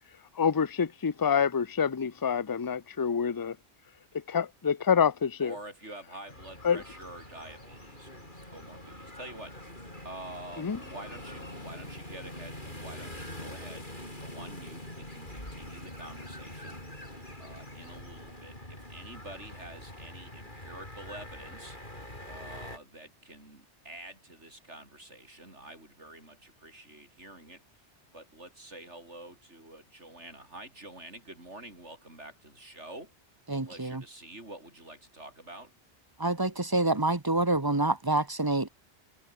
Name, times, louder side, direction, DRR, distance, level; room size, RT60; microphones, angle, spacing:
voice 1, 0.4-3.6 4.3-5.5 6.6-6.8 10.6-10.8, left 7 dB, 25° left, 0.6 m, -27 dB
voice 2, 5.4-9.6 10.0-17.1 17.4-27.6 28.1-33.1 33.7-35.7, right 1 dB, 90° right, 7.4 m, -47 dB
sound 1, 6.3-22.8, left 1 dB, 45° left, 8.3 m, -44 dB
voice 3, 33.5-34.0 36.2-38.7, right 2 dB, 20° right, 1.1 m, -27 dB
omnidirectional pair, 1.2 m